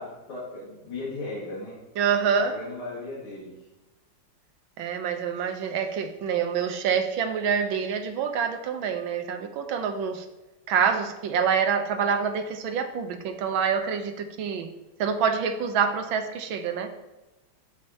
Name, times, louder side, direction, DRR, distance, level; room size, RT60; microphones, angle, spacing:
voice 1, 0.0-1.7 2.4-3.6, left 2 dB, 85° left, -9 dB, 2.8 m, -36 dB
voice 2, 2.0-2.5 4.8-10.3 10.7-14.7 15.0-16.9, right 6 dB, 75° right, 7 dB, 1.4 m, -26 dB
12.5 x 5.0 x 2.8 m, 1.0 s
omnidirectional pair, 2.4 m